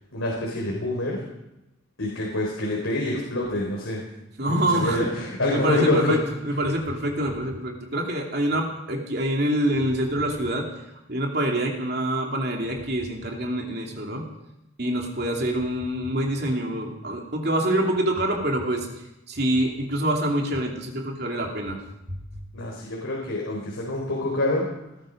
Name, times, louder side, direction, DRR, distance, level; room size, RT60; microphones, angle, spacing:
voice 1, 0.1-1.2 2.0-4.1 4.5-6.2 22.5-24.7, left 1 dB, 85° left, -2 dB, 3.9 m, -26 dB
voice 2, 4.4-5.1 5.5-6.2 6.4-10.7 11.1-14.2 14.8-18.9 19.3-21.8, right 1 dB, 50° right, 1 dB, 2.8 m, -25 dB
19.0 x 13.5 x 5.2 m, 0.92 s
head